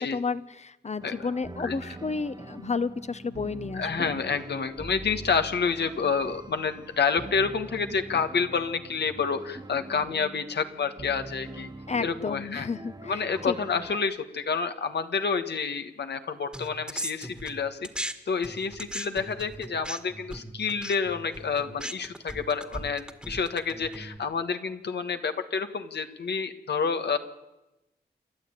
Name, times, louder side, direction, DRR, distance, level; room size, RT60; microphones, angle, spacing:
voice 1, 0.0-4.1 11.9-13.2 13.5-13.6, left 4 dB, 40° left, 14 dB, 1.0 m, -31 dB
sound 1, 1.0-14.0, right 2 dB, 25° right, 1.0 m, -44 dB
voice 2, 3.7-11.7 12.0-12.7 13.0-27.2, left 5 dB, 75° left, 8 dB, 1.6 m, -29 dB
sound 2, 16.5-18.1 18.4-24.2, right 1 dB, 5° right, 1.7 m, -38 dB
28.5 x 11.5 x 9.0 m, 0.97 s
cardioid pair, 65°, 18 cm